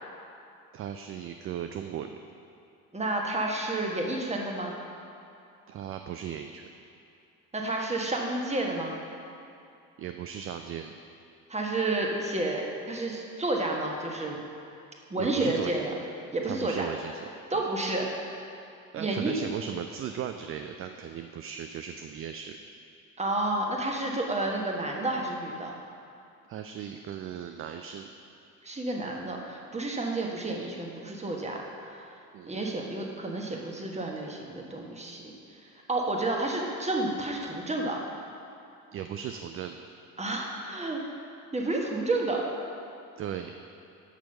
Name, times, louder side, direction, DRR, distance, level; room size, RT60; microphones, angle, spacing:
voice 1, 0.7-2.1 5.7-6.7 10.0-11.0 15.2-15.8 16.4-17.3 17.5-17.6 18.9-22.6 26.5-28.1 32.3-32.5 38.9-39.8 43.2-43.5, right 9 dB, 35° right, 7 dB, 0.4 m, -37 dB
voice 2, 2.9-4.7 7.5-9.0 11.5-14.4 15.1-15.9 16.3-16.9 17.5-18.1 19.0-19.4 23.2-25.8 28.6-31.6 31.9-32.0 32.5-35.2 35.9-38.0 40.2-41.0 41.5-42.4, right 2 dB, 15° right, 0 dB, 1.3 m, -30 dB
6.5 x 6.0 x 5.5 m, 2.6 s
figure-of-eight pair, 45°, 43 cm